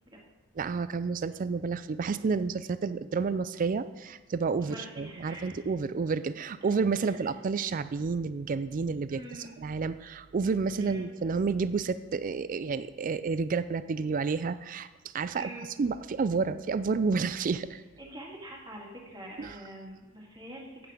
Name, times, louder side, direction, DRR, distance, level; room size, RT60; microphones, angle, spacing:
voice 1, 0.6-14.9 15.1-15.5 15.8-17.8 19.4-19.6, right 4 dB, 40° right, 13 dB, 0.4 m, -30 dB
voice 2, 4.6-5.7 6.6-6.7 7.0-7.2 9.1-9.6 10.8-11.1 15.3-15.7 18.0-20.9, right 1 dB, 20° right, -2 dB, 2.2 m, -45 dB
9.0 x 8.2 x 5.0 m, 1.2 s
head